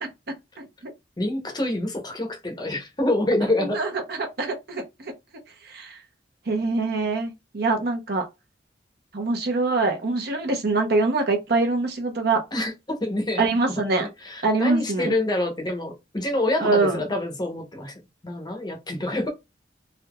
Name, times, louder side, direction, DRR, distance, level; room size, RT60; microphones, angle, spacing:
voice 1, 0.6-0.9 3.6-3.9 4.2-4.8 5.7-6.0 6.5-8.2 9.1-12.4 13.4-14.1 14.4-15.1 16.6-17.0, right 3 dB, 55° right, 0.8 m, -24 dB
voice 2, 1.2-3.8 12.5-13.4 13.9-17.9 18.2-19.3, left 1 dB, 20° left, 0.7 m, -26 dB
3.4 x 2.7 x 2.3 m
head